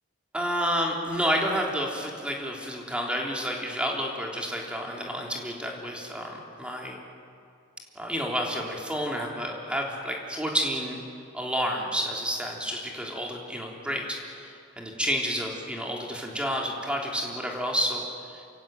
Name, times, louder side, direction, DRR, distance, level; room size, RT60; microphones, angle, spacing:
voice 1, 0.3-7.0 8.0-11.0 11.3-18.0 18.3-18.4, equal, 5° right, 0 dB, 3.3 m, -30 dB
28.5 x 16.0 x 9.1 m, 2.4 s
head